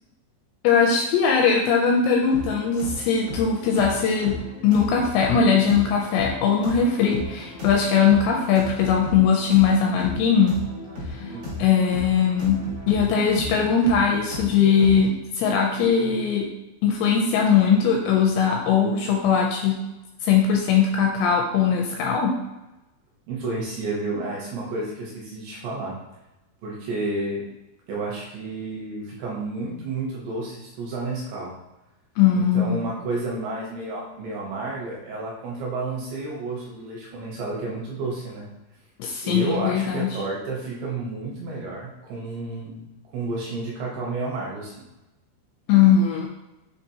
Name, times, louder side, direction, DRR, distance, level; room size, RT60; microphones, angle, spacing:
voice 1, 0.6-4.4 4.6-10.6 11.1-11.2 11.6-16.5 16.8-19.8 20.2-22.4 32.2-32.8 39.0-40.2 45.7-46.3, left 6 dB, 85° left, 0 dB, 2.5 m, -20 dB
sound 1, 2.3-15.1, left 2 dB, 55° right, 2.3 m, -35 dB
voice 2, 11.3-11.7 23.3-26.0 26.6-27.4 27.9-31.5 32.3-38.5 39.2-42.9 43.1-44.7, right 2 dB, 75° right, -4 dB, 2.7 m, -31 dB
6.7 x 2.9 x 2.7 m, 0.98 s
omnidirectional pair, 5.2 m